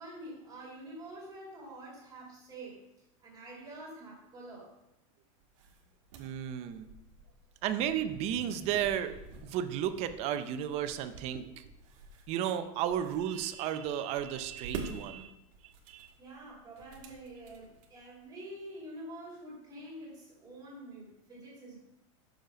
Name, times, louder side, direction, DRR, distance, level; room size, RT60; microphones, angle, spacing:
voice 1, 0.0-2.8 3.2-4.7 16.2-21.8, right 1 dB, 20° right, -5 dB, 2.6 m, -47 dB
sound 1, 5.4-18.2, right 5 dB, 60° right, 1.4 m, -48 dB
voice 2, 6.2-6.9 7.6-9.2 9.4-11.6 12.3-15.3 15.9-16.1, right 10 dB, 35° right, 10 dB, 0.5 m, -33 dB
6.5 x 4.9 x 5.1 m, 0.91 s
supercardioid pair, 145°, 18 cm